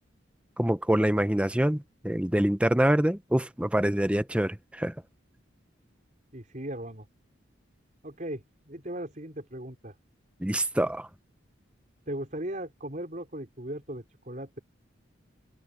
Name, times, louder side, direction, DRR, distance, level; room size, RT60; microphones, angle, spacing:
voice 1, 0.6-1.8 2.0-4.9 10.4-11.1, right 1 dB, 5° right, 0.6 m, -25 dB
voice 2, 6.3-7.1 8.0-9.9 12.1-14.6, right 1 dB, 40° right, 5.1 m, -38 dB
open air
head